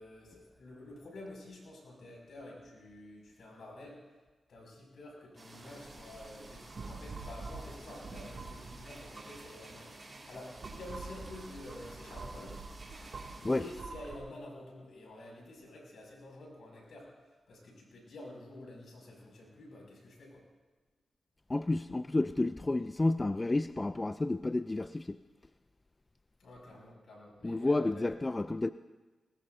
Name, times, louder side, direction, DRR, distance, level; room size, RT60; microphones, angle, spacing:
voice 1, 0.0-4.1 4.5-12.6 13.3-20.4 26.4-28.2, left 1 dB, 75° left, 6.3 m, -49 dB
sound 1, 5.4-13.8, right 2 dB, 30° right, 4.1 m, -52 dB
sound 2, 5.9-9.7 10.3-14.2, right 3 dB, 55° right, 2.5 m, -46 dB
voice 2, 21.5-25.2 27.4-28.7, left 2 dB, 25° left, 0.4 m, -30 dB
20.5 x 20.0 x 2.7 m
cardioid pair, 60°, 0 cm